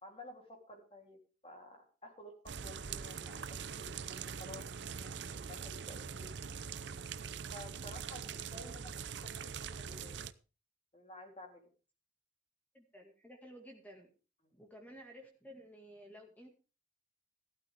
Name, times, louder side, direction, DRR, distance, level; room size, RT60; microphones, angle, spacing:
voice 1, 0.0-4.7 5.0-6.3 7.5-8.9 9.2-10.3 10.9-11.6 14.4-14.6, left 1 dB, 30° left, 2 dB, 3.4 m, -53 dB
sound 1, 2.5-10.3, right 6 dB, 85° right, 0.7 m, -43 dB
voice 2, 12.7-14.1 14.6-16.5, equal, 10° left, 2 dB, 2.1 m, -54 dB
14.5 x 12.5 x 3.6 m, 0.35 s
head